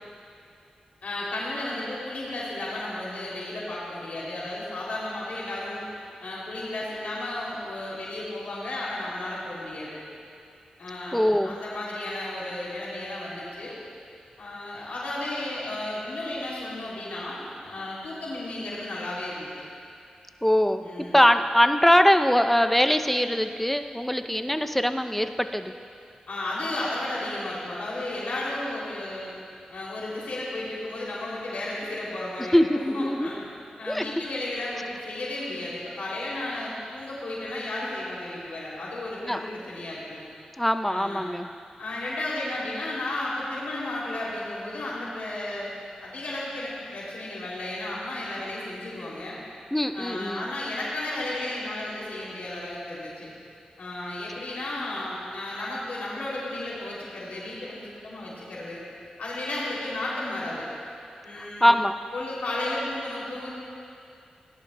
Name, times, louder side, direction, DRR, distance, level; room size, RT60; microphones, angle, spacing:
voice 1, 1.0-5.9 6.2-10.0 10.8-11.2 11.4-13.8 14.4-19.5 20.8-21.2 26.3-29.3 29.7-33.4 33.8-40.2 40.9-41.3 41.8-45.7 46.0-49.4 49.9-53.3 53.8-58.8 59.2-60.7 61.2-61.7 62.1-63.5, left 1 dB, 80° left, -6 dB, 2.8 m, -33 dB
voice 2, 11.1-11.6 20.4-20.8 21.1-25.7 32.5-33.3 33.9-34.0 39.3-39.4 40.6-41.5 49.7-50.5 61.4-62.0, equal, 5° left, 8 dB, 0.5 m, -22 dB
17.5 x 11.0 x 2.2 m, 2.5 s
cardioid pair, 55°, 3 cm